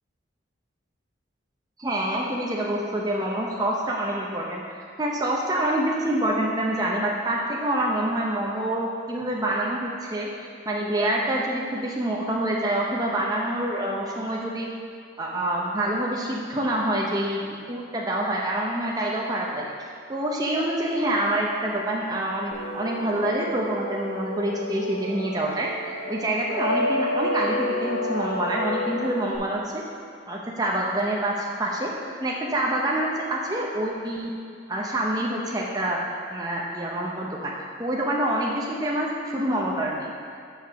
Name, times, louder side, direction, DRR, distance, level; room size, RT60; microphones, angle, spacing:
voice 1, 1.8-10.3 10.7-14.7 15.2-19.7 20.1-25.7 26.1-29.7 30.3-31.9 32.2-34.3 34.7-36.0 36.3-37.5 37.8-39.1 39.3-40.1, right 1 dB, 20° right, -3 dB, 0.6 m, -26 dB
sound 1, 22.5-29.4, left 1 dB, 45° left, 1.2 m, -30 dB
6.4 x 4.9 x 5.6 m, 2.3 s
head